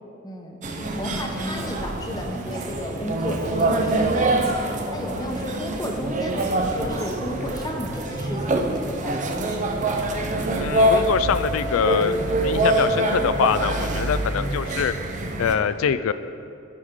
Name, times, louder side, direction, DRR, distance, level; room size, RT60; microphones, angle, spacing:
voice 1, 0.2-0.6 1.0-4.6 4.9-10.4, equal, 20° left, 1 dB, 0.8 m, -33 dB
sound 1, 0.6-15.5, right 1 dB, 35° right, 0.6 m, -25 dB
Female speech woman speaking, 0.6-4.1 4.4-7.1, equal, 85° right, 1.8 m, -38 dB
voice 2, 10.6-14.9 15.4-16.1, left 7 dB, 80° left, 13 dB, 0.3 m, -24 dB
13.0 x 5.0 x 3.7 m, 2.6 s
head